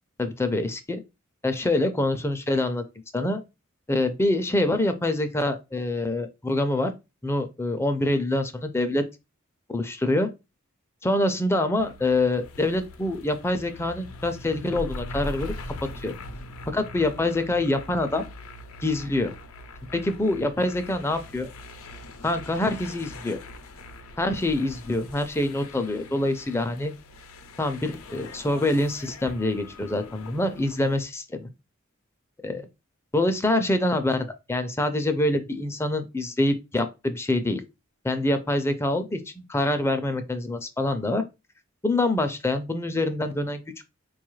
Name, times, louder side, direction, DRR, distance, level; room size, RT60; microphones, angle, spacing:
voice 1, 0.2-1.0 1.4-2.8 3.1-3.4 3.9-6.9 7.2-9.0 9.7-10.3 11.0-15.5 15.8-16.1 16.7-18.2 18.8-19.3 19.9-21.5 22.2-23.4 24.2-26.9 27.6-31.5 32.4-32.7 33.1-37.6 38.0-41.2 41.8-43.8, left 2 dB, 10° left, 0.4 m, -25 dB
sound 1, 11.8-31.0, left 2 dB, 80° left, 0.5 m, -41 dB
4.3 x 2.3 x 3.1 m
head